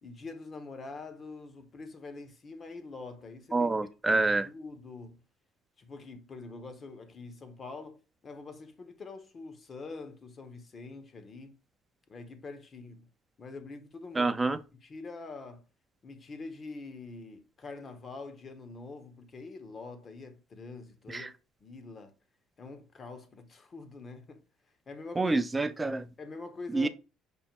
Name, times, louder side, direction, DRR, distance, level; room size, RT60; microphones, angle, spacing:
voice 1, 0.0-3.7 4.1-5.2 5.8-11.6 12.1-13.1 13.4-14.3 14.8-15.6 16.0-21.3 21.6-22.1 22.6-24.4 24.9-25.4 26.2-26.9, left 3 dB, 35° left, 0.9 m, -45 dB
voice 2, 3.5-4.5 14.1-14.6 21.1-21.3 25.2-26.1 26.7-26.9, right 3 dB, 15° right, 0.4 m, -27 dB
5.3 x 2.1 x 4.4 m
cardioid pair, 110°, 0 cm